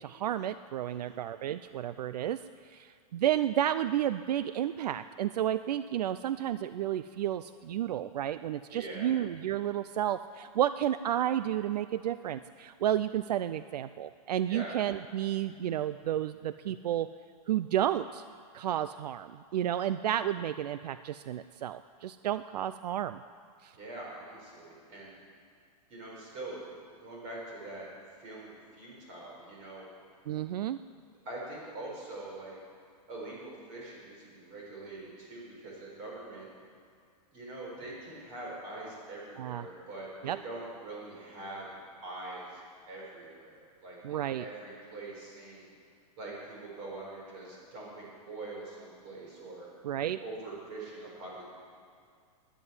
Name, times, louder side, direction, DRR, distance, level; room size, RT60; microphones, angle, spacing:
voice 1, 0.0-2.4 2.7-17.1 17.5-18.2 18.5-23.2 23.6-23.7 30.3-30.8 39.4-39.6 40.2-40.4 44.0-44.5 49.8-50.2, right 11 dB, 80° right, 13 dB, 0.5 m, -31 dB
voice 2, 0.9-1.2 8.7-9.1 14.5-14.8 23.8-25.1 25.9-26.6 27.0-27.9 28.2-29.9 31.2-32.6 33.1-36.5 37.3-42.6 42.9-45.7 46.2-49.7 50.2-51.4, right 2 dB, 30° right, -3 dB, 4.5 m, -43 dB
11.0 x 10.0 x 9.6 m, 2.2 s
supercardioid pair, 175°, 20 cm